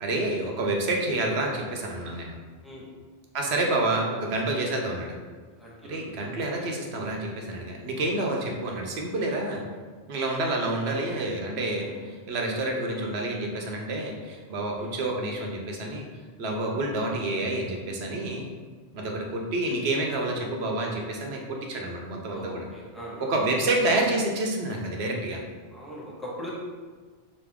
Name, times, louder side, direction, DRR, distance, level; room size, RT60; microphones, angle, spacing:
voice 1, 0.0-2.3 3.3-5.1 5.9-9.6 10.1-16.0 16.4-18.5 18.9-22.6 23.3-25.4, right 2 dB, 90° right, 0 dB, 1.0 m, -28 dB
voice 2, 5.6-6.0 7.9-8.0 11.8-12.0 14.5-14.9 22.3-23.3 25.7-26.5, equal, ahead, -5 dB, 0.9 m, -41 dB
5.1 x 2.7 x 3.5 m, 1.5 s
omnidirectional pair, 1.1 m